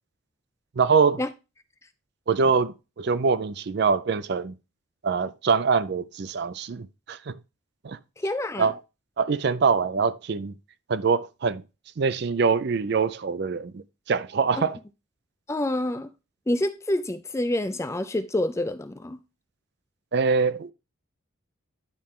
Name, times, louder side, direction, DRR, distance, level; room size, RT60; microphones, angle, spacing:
voice 1, 0.8-1.2 2.3-4.5 5.0-7.4 7.8-8.0 8.6-8.8 9.2-10.5 10.9-11.6 12.0-14.8 20.1-20.7, right 5 dB, 50° right, 0.4 m, -24 dB
voice 2, 8.2-8.7 14.6-14.7 15.5-16.1 16.5-19.2, left 1 dB, 15° left, 0.3 m, -27 dB
10.5 x 4.4 x 3.6 m
head